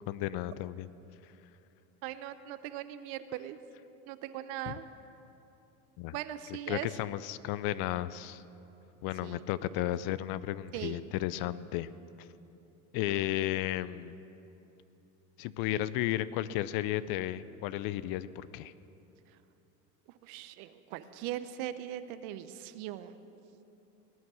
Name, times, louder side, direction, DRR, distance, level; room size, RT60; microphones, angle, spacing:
voice 1, 0.1-0.9 4.7-4.8 6.0-6.1 6.7-8.4 9.0-11.9 12.9-14.2 15.4-18.7, left 14 dB, 55° left, 16 dB, 0.5 m, -33 dB
voice 2, 2.0-3.6 4.1-4.9 6.1-6.9 9.2-9.4 9.8-9.9 10.7-11.1 20.2-23.1, right 12 dB, 60° right, 12 dB, 0.8 m, -40 dB
18.5 x 9.4 x 6.3 m, 3.0 s
hypercardioid pair, 95°, 43 cm